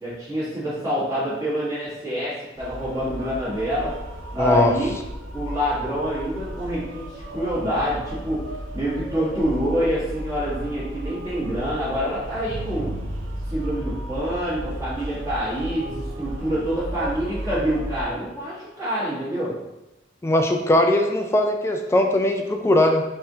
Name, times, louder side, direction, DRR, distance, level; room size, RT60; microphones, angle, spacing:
voice 1, 0.0-3.9 4.3-4.9 5.3-8.4 8.7-13.0 13.5-19.5, equal, 15° right, -10 dB, 1.2 m, -26 dB
sound 1, 2.6-18.0, right 1 dB, 75° right, 0.7 m, -34 dB
voice 2, 4.3-4.7 20.2-23.0, left 1 dB, 15° left, 4 dB, 0.3 m, -20 dB
4.1 x 3.6 x 2.7 m, 0.95 s
head